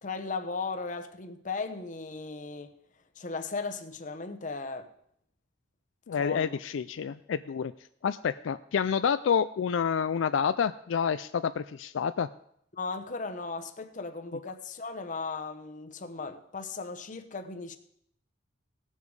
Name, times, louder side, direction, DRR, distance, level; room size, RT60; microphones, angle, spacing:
voice 1, 0.0-2.8 3.2-4.9 6.1-6.6 12.7-17.8, left 4 dB, 40° left, 0.9 m, -37 dB
voice 2, 6.1-7.7 8.0-12.3, left 7 dB, 80° left, 0.4 m, -28 dB
18.0 x 7.3 x 4.8 m
head